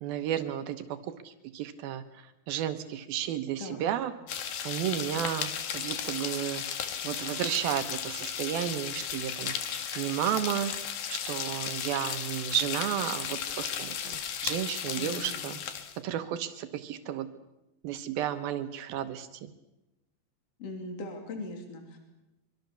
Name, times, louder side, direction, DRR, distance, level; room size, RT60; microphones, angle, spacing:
voice 1, 0.0-4.1 4.6-6.6 7.0-10.7 11.1-15.6 16.0-17.3 17.8-19.5, right 11 dB, 85° right, 9 dB, 2.9 m, -33 dB
voice 2, 3.6-3.9 15.0-15.6 20.6-22.0, left 2 dB, 45° left, 3 dB, 3.9 m, -40 dB
sound 1, 4.3-16.0, left 8 dB, 75° left, 3.5 m, -35 dB
sound 2, 5.9-6.8 7.7-8.1 9.0-10.3, right 1 dB, ahead, 4.1 m, -49 dB
24.5 x 24.0 x 7.0 m, 0.97 s
omnidirectional pair, 4.2 m